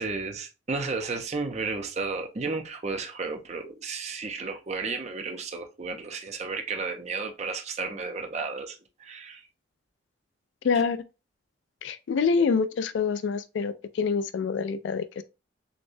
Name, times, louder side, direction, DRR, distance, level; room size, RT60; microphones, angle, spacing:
voice 1, 0.0-9.4, right 4 dB, 35° right, 0.6 m, -33 dB
voice 2, 10.6-11.0 11.8-15.2, left 5 dB, 70° left, 0.3 m, -26 dB
6.4 x 2.2 x 2.6 m
head